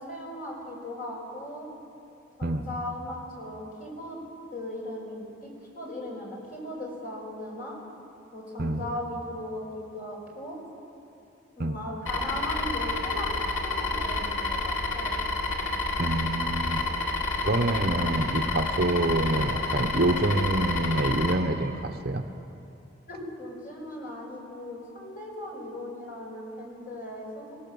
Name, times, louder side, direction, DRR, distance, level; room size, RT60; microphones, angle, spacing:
voice 1, 0.0-1.7 2.4-4.2 4.5-7.8 8.3-10.6 11.6-13.3 13.6-15.2 23.1-27.5, left 1 dB, 45° left, -2 dB, 5.7 m, -38 dB
sound 1, 12.1-21.3, left 2 dB, 90° left, 2.4 m, -29 dB
voice 2, 16.0-16.8 17.4-22.2, right 1 dB, 50° right, 6 dB, 1.1 m, -26 dB
25.0 x 17.5 x 7.2 m, 2.7 s
head